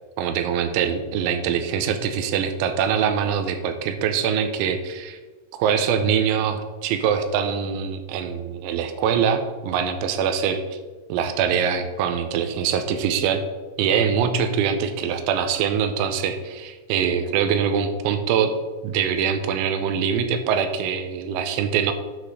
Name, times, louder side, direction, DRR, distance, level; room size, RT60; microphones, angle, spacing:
voice 1, 0.2-5.2 5.5-10.8 11.1-13.4 13.8-18.5 18.8-21.9, right 7 dB, 85° right, 8 dB, 3.0 m, -23 dB
9.5 x 4.1 x 6.4 m, 1.3 s
omnidirectional pair, 5.4 m